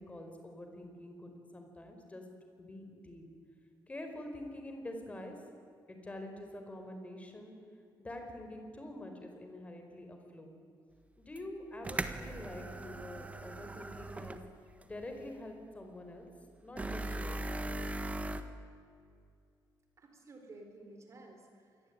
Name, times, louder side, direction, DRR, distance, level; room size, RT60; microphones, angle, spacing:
voice 1, 0.0-2.2 2.6-3.3 3.9-5.3 5.9-7.5 8.0-10.6 11.2-14.4 14.8-16.3 16.6-17.7, left 1 dB, 15° left, 4 dB, 4.7 m, -46 dB
sound 1, 11.4-11.5 11.8-14.5 14.8-14.9 16.8-18.4, right 2 dB, 15° right, 1.5 m, -39 dB
voice 2, 20.0-21.9, right 2 dB, 40° right, 4 dB, 4.2 m, -54 dB
27.0 x 21.5 x 9.5 m, 2.4 s
wide cardioid pair, 160°, 8 cm